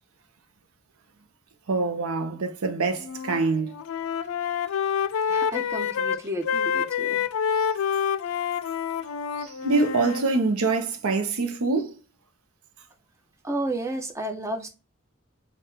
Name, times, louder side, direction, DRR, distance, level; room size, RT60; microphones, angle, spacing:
voice 1, 1.7-3.7 9.4-11.9, right 3 dB, 90° right, 0.7 m, -25 dB
Wind instrument woodwind instrument, 3.0-3.4 3.7-10.3, left 7 dB, 75° left, 0.4 m, -27 dB
voice 2, 5.3-7.2 13.4-14.7, right 1 dB, 15° right, 0.6 m, -32 dB
4.3 x 2.4 x 3.6 m
head